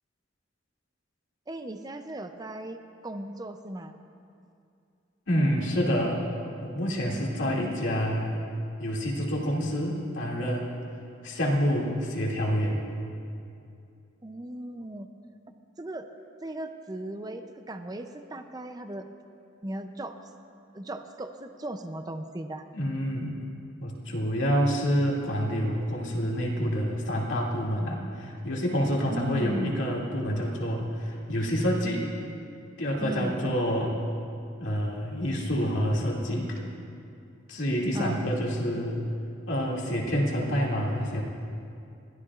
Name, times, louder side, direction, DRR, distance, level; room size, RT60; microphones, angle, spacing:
voice 1, 1.5-3.9 7.4-7.9 14.2-15.1 15.8-16.1 16.4-19.1 19.6-20.2 20.7-22.6 29.1-29.8 33.0-33.5 37.9-38.3, right 1 dB, 20° right, 7 dB, 0.5 m, -37 dB
voice 2, 5.3-6.2 6.6-8.4 8.8-10.8 11.2-12.8 22.7-23.4 23.8-32.1 32.8-34.0 34.6-36.5 37.5-39.0 39.5-41.2, equal, 75° left, -3 dB, 2.3 m, -27 dB
21.5 x 15.0 x 2.4 m, 2.5 s
head